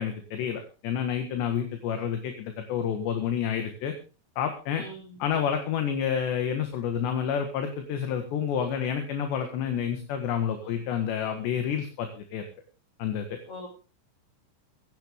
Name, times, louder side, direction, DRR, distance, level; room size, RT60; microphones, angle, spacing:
voice 1, 0.0-3.9 4.4-4.8 5.2-12.5 13.0-13.4, left 8 dB, 65° left, 6 dB, 3.6 m, -29 dB
voice 2, 4.8-5.2 10.6-10.7 13.5-13.7, left 1 dB, 30° left, 2 dB, 7.1 m, -42 dB
16.5 x 15.0 x 3.6 m, 0.34 s
omnidirectional pair, 5.9 m